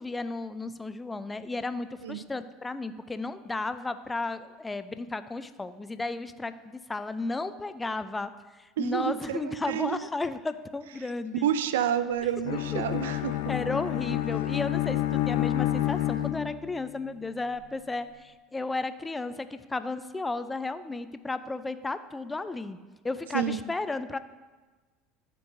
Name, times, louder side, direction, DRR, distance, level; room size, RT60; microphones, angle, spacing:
voice 1, 0.0-8.3 8.6-11.5 12.5-13.0 13.5-22.8 23.0-24.2, left 3 dB, 15° left, 12 dB, 0.4 m, -34 dB
voice 2, 8.8-10.1 11.4-13.4 23.3-23.7, right 10 dB, 75° right, 13 dB, 0.3 m, -29 dB
Bowed string instrument, 12.4-16.9, left 13 dB, 70° left, 0.5 m, -29 dB
12.5 x 4.6 x 2.6 m, 1.3 s
hypercardioid pair, 70°, 0 cm